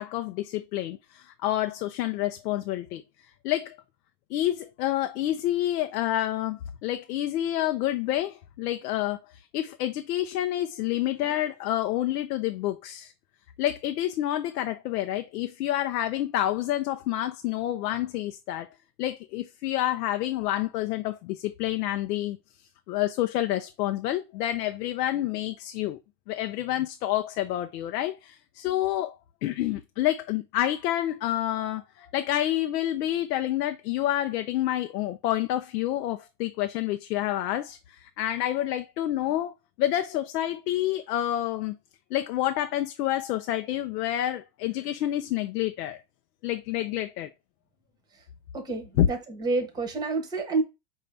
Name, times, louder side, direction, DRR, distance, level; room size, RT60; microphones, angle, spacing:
voice 1, 0.0-3.0 3.4-3.8 4.3-13.1 13.6-18.7 19.0-22.4 22.9-26.0 26.3-29.2 29.4-41.8 42.1-46.0 46.4-47.3 49.0-49.1, left 13 dB, 85° left, 0.7 m, -28 dB
voice 2, 48.5-50.6, right 3 dB, 10° right, 0.9 m, -29 dB
5.4 x 2.8 x 3.3 m
supercardioid pair, 140°, 47 cm